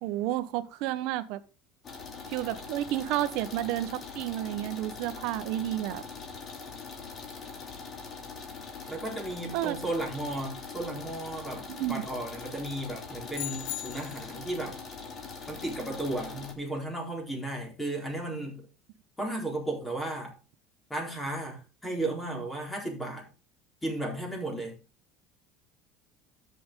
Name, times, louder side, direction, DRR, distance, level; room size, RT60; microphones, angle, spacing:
voice 1, 0.0-1.4 2.3-6.0 9.5-9.8 11.7-12.0, right 14 dB, 65° right, 13 dB, 1.1 m, -31 dB
sound 1, 1.8-16.5, left 5 dB, 30° left, 2.9 m, -42 dB
voice 2, 8.9-14.8 15.5-18.7 19.2-20.3 20.9-23.3 23.8-24.8, right 1 dB, 10° left, 0 dB, 4.1 m, -34 dB
sound 2, 13.3-14.4, left 20 dB, 80° left, 0.5 m, -38 dB
13.0 x 6.9 x 3.8 m, 0.34 s
cardioid pair, 155°, 0 cm